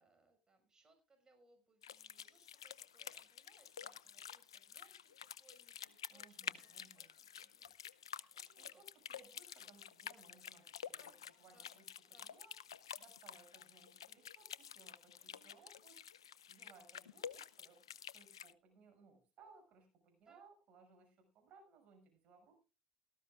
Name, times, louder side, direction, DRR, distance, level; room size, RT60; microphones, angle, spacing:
voice 1, 0.0-8.8 11.0-11.2 11.5-11.7 12.1-12.3 15.2-15.5 20.2-20.4, right 3 dB, 25° right, 5 dB, 5.5 m, -71 dB
sound 1, 1.8-18.5, left 9 dB, 85° left, 0.6 m, -50 dB
voice 2, 6.1-7.1 8.6-22.6, right 4 dB, 50° right, 4 dB, 6.3 m, -65 dB
18.0 x 14.0 x 2.4 m, 0.30 s
hypercardioid pair, 65°, 3 cm